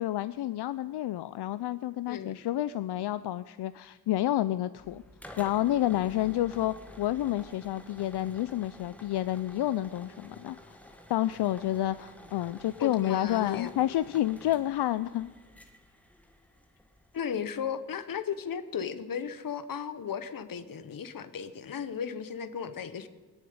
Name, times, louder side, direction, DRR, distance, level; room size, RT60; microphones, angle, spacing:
voice 1, 0.0-5.0 5.4-10.8 11.1-15.3, left 13 dB, 80° left, 14 dB, 0.5 m, -29 dB
sound 1, 4.8-17.3, left 1 dB, 5° left, 1.3 m, -51 dB
voice 2, 12.8-13.7 17.1-23.1, left 7 dB, 55° left, 12 dB, 1.0 m, -35 dB
21.0 x 7.2 x 9.5 m, 1.4 s
wide cardioid pair, 145°, 39 cm